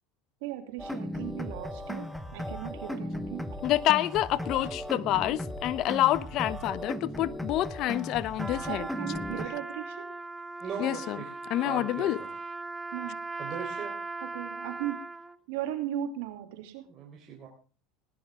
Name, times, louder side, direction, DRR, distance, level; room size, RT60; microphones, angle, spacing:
voice 1, 0.4-3.4 8.6-10.1 12.9-13.2 14.3-15.0 15.5-16.8, right 12 dB, 75° right, 7 dB, 2.9 m, -37 dB
sound 1, 0.8-9.5, left 1 dB, ahead, 1.5 m, -37 dB
voice 2, 3.6-8.8 10.8-11.2 11.5-12.2, left 14 dB, 55° left, 19 dB, 0.8 m, -27 dB
Trumpet, 8.4-15.4, right 3 dB, 15° right, 1.0 m, -39 dB
voice 3, 10.6-11.3 11.6-12.3 13.4-13.9 16.9-17.5, right 7 dB, 40° right, -1 dB, 4.3 m, -39 dB
18.5 x 11.5 x 3.7 m, 0.37 s
supercardioid pair, 100°, 0 cm